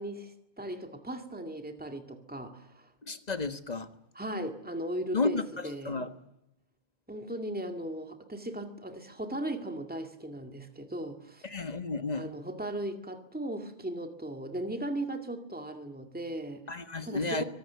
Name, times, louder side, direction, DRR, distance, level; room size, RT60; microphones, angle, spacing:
voice 1, 0.0-2.9 4.1-6.0 7.1-11.5 12.1-16.8 17.0-17.4, right 1 dB, 10° right, 2.1 m, -37 dB
voice 2, 3.1-3.9 5.1-6.1 11.4-12.3 16.7-17.4, left 3 dB, 40° left, 1.5 m, -32 dB
24.0 x 18.0 x 9.4 m
omnidirectional pair, 1.1 m